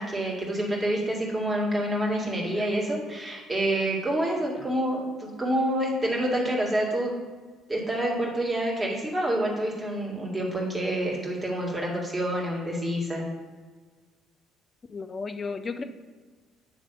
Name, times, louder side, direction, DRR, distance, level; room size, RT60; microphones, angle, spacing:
voice 1, 0.0-7.2 7.7-13.3, right 1 dB, 20° right, -3 dB, 2.1 m, -27 dB
voice 2, 14.9-15.8, left 4 dB, 30° left, 9 dB, 0.5 m, -34 dB
8.6 x 3.3 x 5.2 m, 1.4 s
figure-of-eight pair, 55°, 0 cm